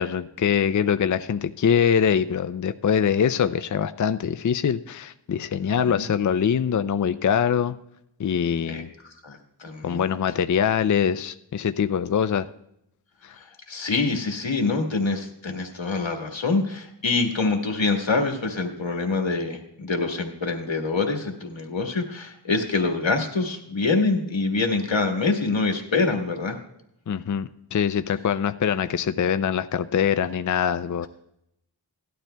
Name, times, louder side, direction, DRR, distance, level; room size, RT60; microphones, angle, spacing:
voice 1, 0.0-7.7 8.2-8.9 9.8-12.5 13.2-13.4 27.1-31.1, left 8 dB, 45° left, 11 dB, 0.4 m, -23 dB
voice 2, 5.6-6.1 8.7-10.1 13.4-26.6, left 3 dB, 85° left, 3 dB, 1.5 m, -25 dB
17.5 x 12.0 x 2.2 m, 0.79 s
wide cardioid pair, 70°, 44 cm